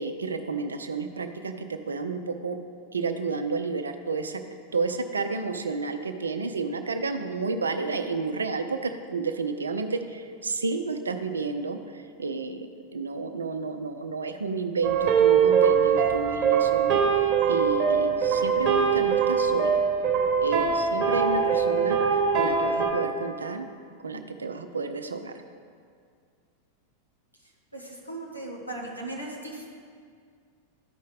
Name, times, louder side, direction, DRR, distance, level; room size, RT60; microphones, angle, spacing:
voice 1, 0.0-2.6 2.9-4.4 4.7-12.7 12.9-19.8 20.4-23.7 24.0-25.3 29.2-29.3, right 4 dB, 75° right, 7 dB, 0.6 m, -31 dB
sound 1, 14.8-22.9, right 6 dB, 35° right, 1.2 m, -22 dB
voice 2, 27.7-29.7, right 2 dB, 90° left, -2 dB, 1.2 m, -37 dB
13.0 x 5.2 x 4.0 m, 2.2 s
figure-of-eight pair, 90°, 0 cm